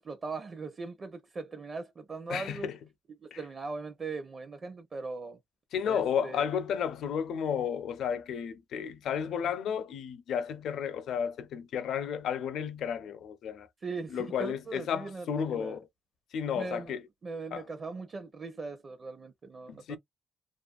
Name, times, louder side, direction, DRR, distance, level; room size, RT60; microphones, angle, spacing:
voice 1, 0.0-2.7 3.2-5.4 5.8-6.5 13.8-15.8 16.5-16.9 17.2-20.0, right 4 dB, 40° right, 0.6 m, -40 dB
voice 2, 2.3-2.8 3.3-3.4 5.7-13.7 14.1-15.9 16.3-17.0 17.5-17.6 19.7-20.0, left 8 dB, 75° left, 0.5 m, -32 dB
2.5 x 2.4 x 2.3 m
cardioid pair, 90°, 0 cm